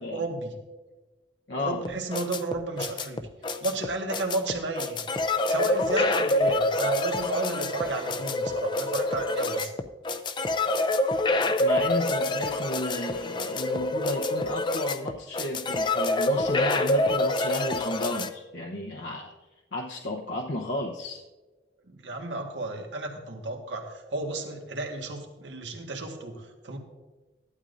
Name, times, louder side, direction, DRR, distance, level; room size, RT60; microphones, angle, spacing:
voice 1, 0.1-0.6 1.6-3.2 3.6-5.0 5.5-9.7 21.9-26.8, right 2 dB, 85° right, 2 dB, 1.7 m, -32 dB
voice 2, 1.5-1.8 11.6-19.3 19.7-21.2, left 2 dB, 75° left, -1 dB, 0.9 m, -33 dB
sound 1, 1.8-18.3, left 2 dB, 25° left, 0.5 m, -27 dB
15.0 x 12.0 x 2.6 m, 1.2 s
head